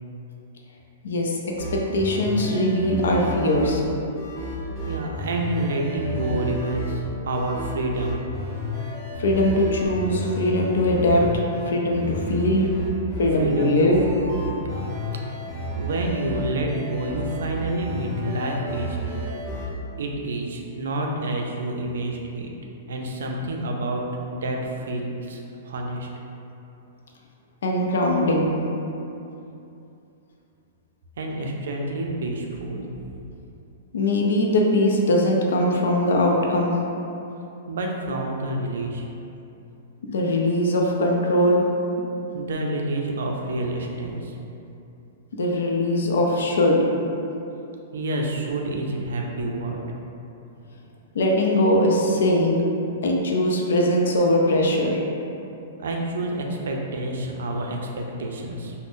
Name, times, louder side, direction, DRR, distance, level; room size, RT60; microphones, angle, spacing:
voice 1, 1.0-3.8 9.2-12.7 13.2-14.1 27.6-28.6 33.9-36.7 40.1-41.6 45.4-46.9 51.1-52.6 53.0-55.0, left 1 dB, 80° left, -1 dB, 0.4 m, -21 dB
sound 1, 1.5-19.7, equal, ahead, 0.6 m, -32 dB
voice 2, 4.9-8.2 13.3-13.9 14.6-14.8 15.7-19.2 20.0-22.5 22.9-24.0 24.3-25.4 25.6-26.1 31.2-32.8 37.7-39.0 42.3-44.4 47.9-49.8 55.8-58.7, right 2 dB, 75° right, 1 dB, 0.4 m, -28 dB
2.5 x 2.0 x 3.5 m, 2.8 s
hypercardioid pair, 180°, 0 cm